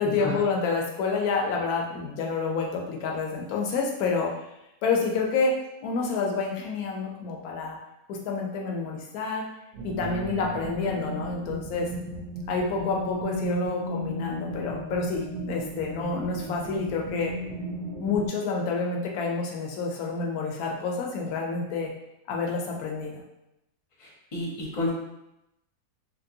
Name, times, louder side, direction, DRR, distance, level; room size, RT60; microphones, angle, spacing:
voice 1, 0.0-4.3 4.8-5.5 5.8-7.8 8.1-9.4 9.8-11.9 12.5-17.3 18.0-21.9 22.3-23.1, left 4 dB, 75° left, 0 dB, 1.1 m, -28 dB
sound 1, 9.7-18.3, right 1 dB, 65° right, 0.9 m, -35 dB
voice 2, 24.0-24.9, left 2 dB, 35° left, -4 dB, 0.8 m, -31 dB
3.1 x 2.9 x 2.6 m, 0.88 s
omnidirectional pair, 1.6 m